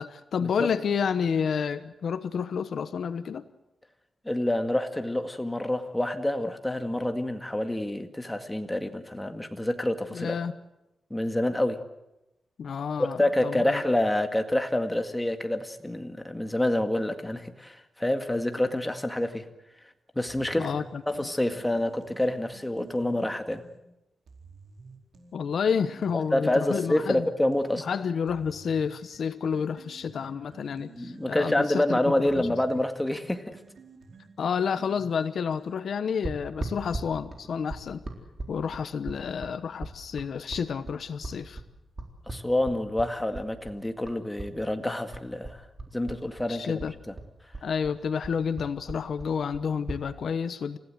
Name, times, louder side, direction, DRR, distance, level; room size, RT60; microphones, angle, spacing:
voice 1, 0.0-3.4 10.1-10.5 12.6-13.8 20.6-21.3 25.3-27.3 27.8-32.5 34.4-38.0 38.5-41.6 46.5-46.9 47.6-50.8, left 6 dB, 70° left, 12 dB, 1.0 m, -30 dB
voice 2, 4.3-10.4 11.1-11.8 13.2-19.4 20.2-20.7 21.1-23.6 26.3-27.8 30.9-33.6 42.3-45.6 45.9-46.8 47.1-47.2, left 1 dB, 10° left, 6 dB, 1.9 m, -27 dB
sound 1, 20.3-23.8 24.3-27.8 28.3-36.1, right 4 dB, 80° right, 4.5 m, -52 dB
sound 2, 36.2-44.5 44.8-46.5 46.8-50.0, right 2 dB, 30° right, 4.0 m, -38 dB
29.0 x 16.0 x 7.8 m, 0.91 s
wide cardioid pair, 110°, 0 cm